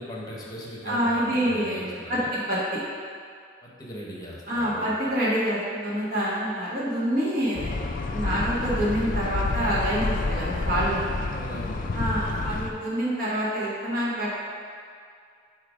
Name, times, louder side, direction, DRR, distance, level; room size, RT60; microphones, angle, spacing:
voice 1, 0.0-2.4 3.6-5.1 11.3-11.8 12.1-12.6, equal, 20° left, -4 dB, 1.1 m, -39 dB
voice 2, 0.8-2.6 4.5-7.7 8.1-11.1 11.9-14.3, equal, 50° right, -9 dB, 1.4 m, -27 dB
sound 1, 7.5-12.7, left 3 dB, 45° left, 0.4 m, -29 dB
7.6 x 2.8 x 5.0 m, 2.2 s
head